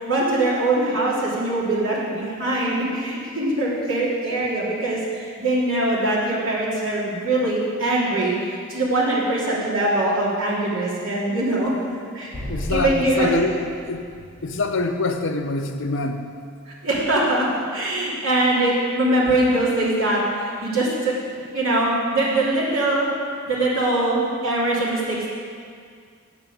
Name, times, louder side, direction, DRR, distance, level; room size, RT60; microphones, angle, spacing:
voice 1, 0.0-8.3 8.7-11.7 12.1-12.3 12.7-13.4 16.8-17.4 17.7-21.1 21.5-23.1 23.5-25.3, right 2 dB, 65° right, -7 dB, 3.1 m, -22 dB
Explosion, 12.3-15.6, equal, 25° right, 2.6 m, -34 dB
voice 2, 12.5-13.5 13.9-14.0 14.4-16.3, left 3 dB, 60° left, 6 dB, 0.7 m, -25 dB
8.1 x 7.3 x 8.5 m, 2.2 s
head